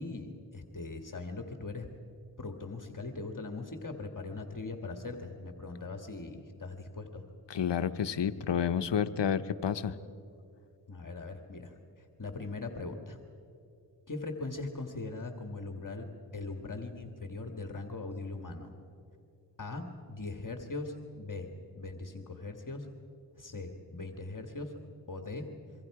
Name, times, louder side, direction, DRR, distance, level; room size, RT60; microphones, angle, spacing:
voice 1, 0.0-1.9 2.4-7.2 10.9-13.2 14.1-16.1 16.3-18.7 19.6-22.9 23.4-24.7 25.1-25.5, left 3 dB, 45° left, 4 dB, 1.8 m, -40 dB
voice 2, 7.5-9.9, left 8 dB, 70° left, 12 dB, 0.9 m, -30 dB
26.5 x 24.0 x 4.8 m, 2.5 s
cardioid pair, 50°, 44 cm